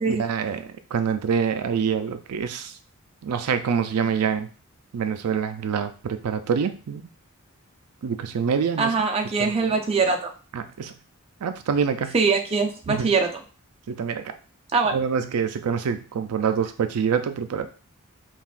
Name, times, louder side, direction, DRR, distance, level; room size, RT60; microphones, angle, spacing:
voice 1, 0.1-2.7 3.2-4.5 4.9-7.1 8.0-8.9 9.4-9.8 10.5-10.9 11.4-12.1 12.9-13.1 13.9-14.3 14.9-17.7, right 6 dB, 85° right, 9 dB, 0.4 m, -26 dB
voice 2, 8.8-10.3 12.1-13.3 14.7-15.0, right 4 dB, 25° right, 3 dB, 0.5 m, -22 dB
5.6 x 2.4 x 2.4 m, 0.37 s
head